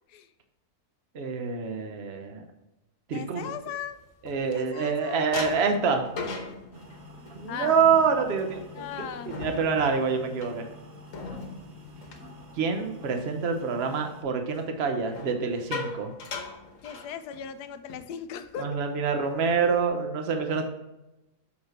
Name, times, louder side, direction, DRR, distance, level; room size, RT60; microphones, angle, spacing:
voice 1, 1.1-2.4 3.1-3.5 4.2-6.1 7.4-10.7 12.6-16.1 18.6-20.7, right 5 dB, 45° right, 5 dB, 1.1 m, -26 dB
voice 2, 3.1-4.0 4.5-5.2 7.5-7.8 8.7-9.4 16.8-18.7, left 8 dB, 90° left, 10 dB, 1.2 m, -38 dB
sound 1, 3.5-4.9 5.3-13.2 13.5-13.8 15.0-17.6 17.9-18.1 18.4-18.7 19.2-19.9, left 4 dB, 60° left, 1.4 m, -40 dB
sound 2, 6.7-14.2, left 1 dB, 65° right, 1.9 m, -47 dB
6.2 x 5.9 x 4.4 m, 0.93 s
omnidirectional pair, 1.7 m